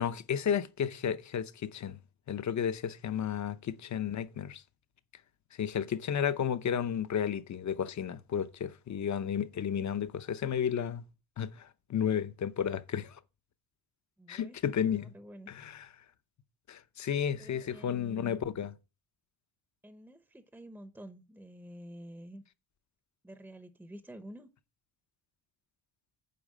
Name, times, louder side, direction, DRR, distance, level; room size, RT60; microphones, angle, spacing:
voice 1, 0.0-2.0 2.3-4.6 5.6-11.0 11.4-13.2 14.3-15.1 15.5-15.9 16.7-18.7, left 8 dB, 40° left, 0.7 m, -32 dB
voice 2, 14.2-14.6 14.9-15.5 17.4-18.4 19.8-22.4 23.2-24.5, equal, 5° right, 0.8 m, -49 dB
8.5 x 4.7 x 7.3 m
cardioid pair, 145°, 45 cm